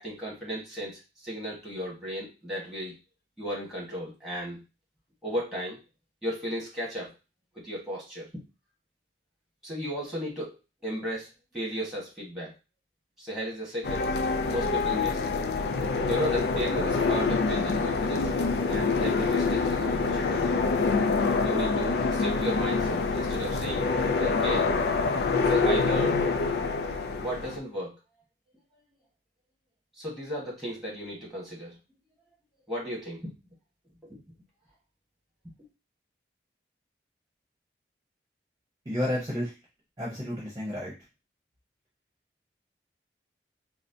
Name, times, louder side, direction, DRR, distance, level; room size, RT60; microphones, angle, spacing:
voice 1, 0.0-3.0 3.4-4.6 5.2-5.8 6.2-7.1 7.5-8.4 9.6-10.5 10.8-11.3 11.5-12.5 13.2-14.1 14.5-15.2 16.1-18.3 18.7-20.6 21.4-23.9 24.2-24.7 25.5-26.2 27.2-27.9 30.0-31.8 32.7-33.3 34.1-34.2, equal, ahead, -5 dB, 1.3 m, -35 dB
sound 1, 13.8-27.6, left 4 dB, 70° left, 0.3 m, -26 dB
voice 2, 38.8-39.6 40.0-40.9, left 1 dB, 20° right, -6 dB, 0.9 m, -31 dB
4.1 x 2.1 x 2.6 m, 0.28 s
head